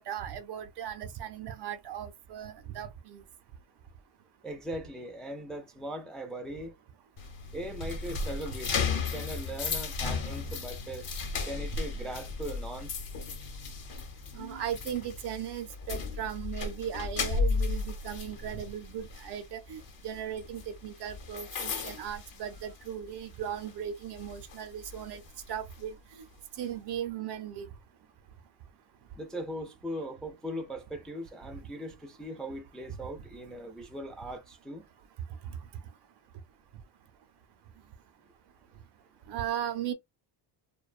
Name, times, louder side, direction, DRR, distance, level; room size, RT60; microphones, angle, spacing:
voice 1, 0.0-3.2 14.3-25.2 25.5-25.9 26.6-27.7 39.3-39.9, right 9 dB, 55° right, 0.7 m, -37 dB
voice 2, 4.4-6.7 7.5-11.1 11.4-13.0 29.2-34.8, equal, ahead, 0.4 m, -39 dB
sound 1, 7.2-23.1 23.4-23.7 24.2-25.8, left 4 dB, 45° left, 0.9 m, -35 dB
2.5 x 2.3 x 2.4 m
cardioid pair, 90°, 48 cm